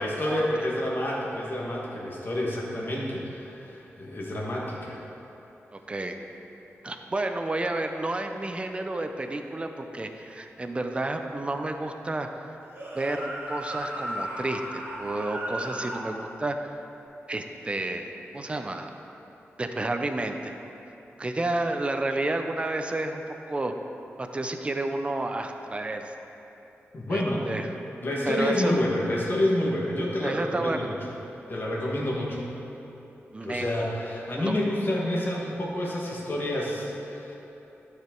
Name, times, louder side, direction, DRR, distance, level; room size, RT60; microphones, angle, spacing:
voice 1, 0.0-5.0 26.9-27.6 28.0-31.0 31.5-32.5 33.4-37.3, left 1 dB, 50° left, -3 dB, 1.6 m, -28 dB
voice 2, 5.7-6.1 6.8-12.3 12.9-16.8 17.3-18.9 19.6-20.5 21.2-23.7 24.2-26.1 27.1-27.7 28.3-28.7 30.2-30.9 33.3-33.7 34.4-34.6, right 2 dB, 25° right, 5 dB, 0.5 m, -30 dB
sound 1, 12.6-16.1, right 1 dB, 45° right, 1.7 m, -35 dB
12.5 x 5.0 x 4.5 m, 3.0 s
wide cardioid pair, 120°, 5 cm